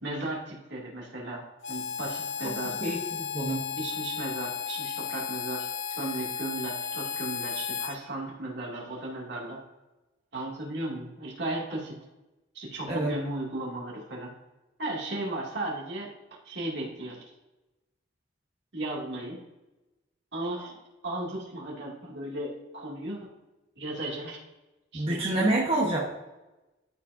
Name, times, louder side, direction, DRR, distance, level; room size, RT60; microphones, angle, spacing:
voice 1, 0.0-2.8 3.8-9.6 10.3-12.0 12.5-14.3 14.8-16.1 16.4-17.3 18.7-19.4 20.3-23.2 23.8-24.4 24.9-25.5, right 1 dB, 65° right, -3 dB, 2.5 m, -35 dB
Harmonica, 1.6-8.0, left 7 dB, 75° left, 0.6 m, -34 dB
voice 2, 2.8-3.6 12.9-13.1 24.9-26.0, right 2 dB, 30° right, -4 dB, 1.2 m, -27 dB
13.5 x 5.1 x 2.7 m, 1.0 s
head